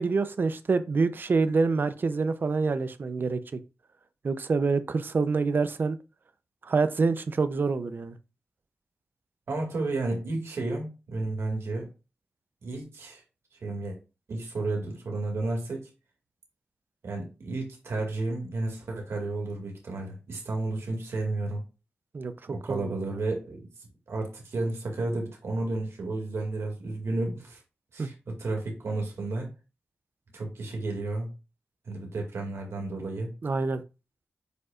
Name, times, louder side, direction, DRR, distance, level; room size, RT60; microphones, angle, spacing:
voice 1, 0.0-3.6 4.2-6.0 6.6-8.2 22.1-22.3 22.7-22.9 28.0-28.1 33.4-33.8, right 4 dB, 50° right, 0.6 m, -26 dB
voice 2, 9.5-11.9 12.6-13.2 13.6-14.0 14.3-15.9 17.0-21.6 22.5-23.7 24.1-27.6 27.9-29.5 30.3-31.3 31.9-33.3, right 2 dB, 80° right, 2.2 m, -32 dB
7.8 x 5.3 x 2.4 m
wide cardioid pair, 125°, 4 cm